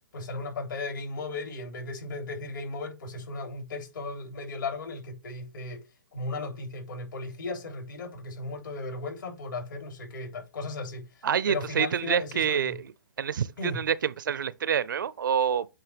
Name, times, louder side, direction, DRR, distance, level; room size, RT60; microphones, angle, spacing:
voice 1, 0.1-5.8 6.1-12.8 13.6-13.8, left 3 dB, 75° left, 3.6 m, -36 dB
voice 2, 11.2-12.9 13.2-15.7, right 8 dB, 75° right, 0.5 m, -27 dB
8.6 x 3.3 x 3.4 m
hypercardioid pair, 150°, 11 cm